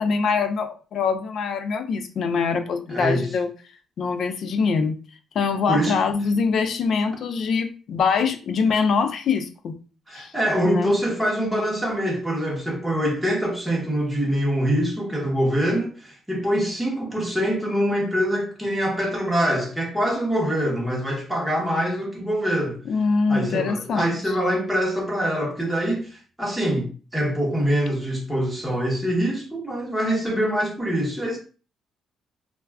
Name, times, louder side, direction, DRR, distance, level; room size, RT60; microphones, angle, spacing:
voice 1, 0.0-3.5 4.0-5.0 5.3-9.7 10.1-10.3 10.6-10.9 22.9-24.4, left 5 dB, 55° left, 0.4 m, -24 dB
voice 2, 2.9-3.3 5.7-6.0 10.1-22.8 23.3-31.4, equal, 5° right, 0.9 m, -24 dB
2.3 x 2.3 x 3.3 m
cardioid pair, 130°, 0 cm